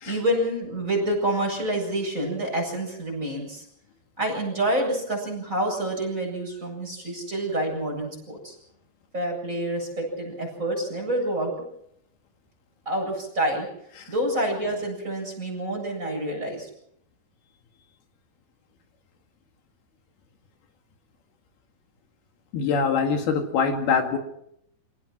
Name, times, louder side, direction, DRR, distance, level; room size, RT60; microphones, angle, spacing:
voice 1, 0.0-3.6 4.2-8.5 9.1-11.5 12.9-13.7 14.1-16.7, right 1 dB, 20° right, -1 dB, 8.0 m, -27 dB
voice 2, 22.5-24.2, left 5 dB, 80° left, 4 dB, 3.9 m, -24 dB
27.5 x 17.5 x 6.1 m, 0.73 s
omnidirectional pair, 4.4 m